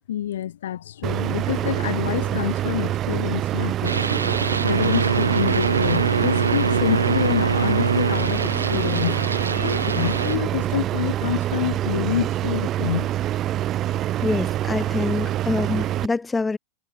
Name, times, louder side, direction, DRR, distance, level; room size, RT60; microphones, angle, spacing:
voice 1, 0.1-4.0 4.6-9.2 9.6-13.1, left 11 dB, 60° left, 1.4 m, -27 dB
sound 1, 1.0-16.1, right 13 dB, 30° right, 2.3 m, -25 dB
sound 2, 3.8-10.4, right 4 dB, 75° right, 0.7 m, -24 dB
voice 2, 14.2-16.6, left 3 dB, 10° left, 0.4 m, -25 dB
figure-of-eight pair, 90°, 0 cm